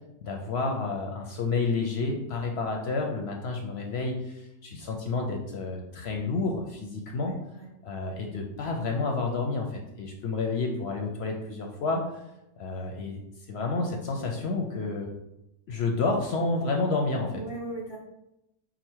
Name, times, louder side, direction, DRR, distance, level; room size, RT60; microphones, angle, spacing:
voice 1, 0.2-7.4 7.8-12.2 12.6-13.2 13.5-15.1 15.7-17.4, left 3 dB, 65° left, 2 dB, 0.7 m, -30 dB
voice 2, 7.1-7.7 17.3-18.0, right 2 dB, 25° right, -3 dB, 0.6 m, -39 dB
5.0 x 2.1 x 4.4 m, 0.87 s
omnidirectional pair, 1.4 m